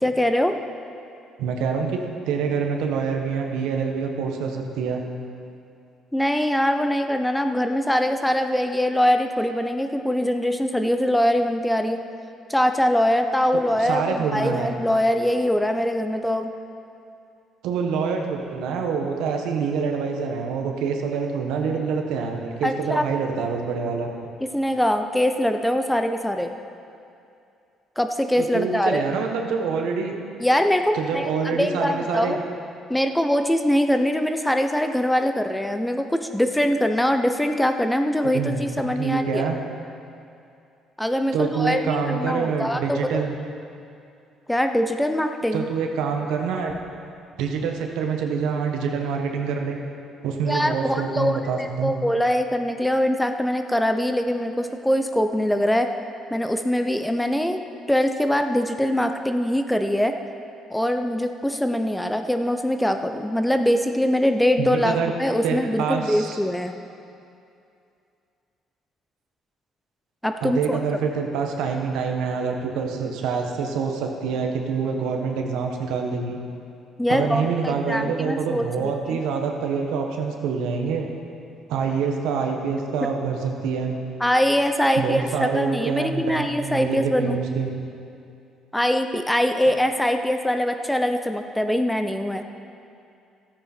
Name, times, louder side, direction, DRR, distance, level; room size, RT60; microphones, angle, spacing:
voice 1, 0.0-0.5 6.1-12.0 12.5-16.5 22.6-23.0 24.5-26.5 28.0-29.0 30.4-32.4 32.9-39.4 41.0-43.2 44.5-45.7 50.5-55.9 56.3-57.6 57.9-60.1 60.7-66.7 70.2-70.8 77.0-79.2 84.2-87.4 88.7-92.4, equal, 5° left, 6 dB, 0.7 m, -23 dB
voice 2, 1.4-5.0 13.8-14.7 17.6-24.1 28.4-30.1 30.9-32.4 38.3-39.6 41.3-43.3 45.5-46.8 47.4-49.8 50.2-51.9 64.6-65.1 65.4-66.4 70.4-76.4 77.1-81.1 81.7-84.0 85.0-87.7, right 5 dB, 85° right, 2 dB, 1.2 m, -26 dB
13.5 x 8.8 x 4.4 m, 2.5 s
cardioid pair, 85°, 0 cm